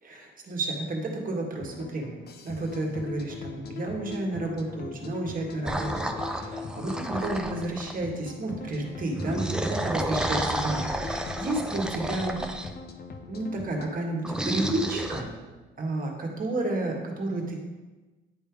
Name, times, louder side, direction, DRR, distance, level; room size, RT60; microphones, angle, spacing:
voice 1, 0.0-12.4 13.3-15.3 15.8-17.5, right 2 dB, 45° right, 0 dB, 1.5 m, -31 dB
sound 1, 1.6-13.9, left 5 dB, 50° left, 0.7 m, -41 dB
sound 2, 5.6-8.0 9.1-12.7 14.2-15.2, right 1 dB, 5° right, 0.6 m, -31 dB
9.9 x 3.4 x 4.7 m, 1.2 s
cardioid pair, 90°, 20 cm